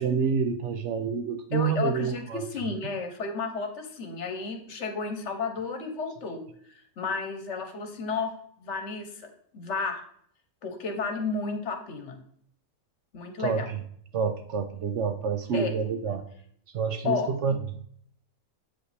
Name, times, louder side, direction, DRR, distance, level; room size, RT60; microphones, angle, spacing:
voice 1, 0.0-2.4 13.4-13.8 14.1-16.2 16.7-17.6, right 6 dB, 65° right, 8 dB, 0.9 m, -28 dB
voice 2, 1.5-6.4 6.7-8.3 8.6-9.3 9.5-10.0 10.6-12.2 13.1-13.7 15.5-15.7 17.0-17.3, left 4 dB, 60° left, 6 dB, 1.1 m, -32 dB
8.0 x 5.1 x 3.3 m, 0.64 s
omnidirectional pair, 1.5 m